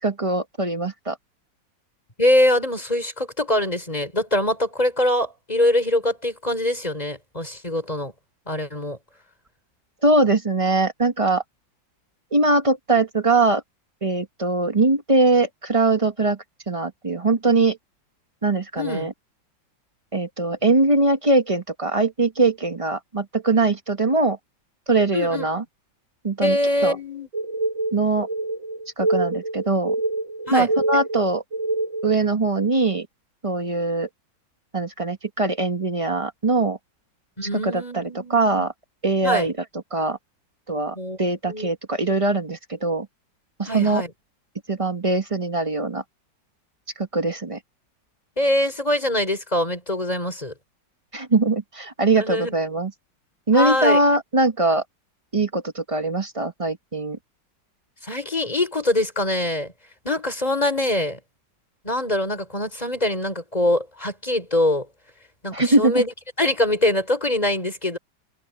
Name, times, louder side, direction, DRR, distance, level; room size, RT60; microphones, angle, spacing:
voice 1, 0.0-1.2 10.0-11.4 12.3-13.6 14.0-16.4 16.7-17.8 18.4-19.1 20.1-24.4 24.9-25.6 26.2-26.6 26.8-27.0 27.9-28.3 29.0-29.9 30.5-31.4 32.0-33.1 33.4-34.1 34.7-36.8 37.6-38.7 39.0-39.5 39.9-40.2 40.7-43.1 43.6-44.0 44.7-46.0 47.0-47.6 51.1-52.9 53.5-54.8 55.3-57.2 65.5-66.0, right 2 dB, 20° right, 1.0 m, -21 dB
voice 2, 2.2-8.1 8.5-9.0 18.8-19.1 25.1-25.5 26.4-27.3 30.5-30.7 37.4-38.7 39.2-39.5 41.0-41.2 41.5-41.7 43.7-44.1 48.4-50.5 52.2-52.5 53.5-54.0 58.0-59.7 60.0-61.2 61.8-64.9 65.4-66.1 66.4-68.0, left 1 dB, 20° left, 5.4 m, -23 dB
sound 1, 27.3-32.2, right 2 dB, 40° right, 5.2 m, -26 dB
omnidirectional pair, 2.1 m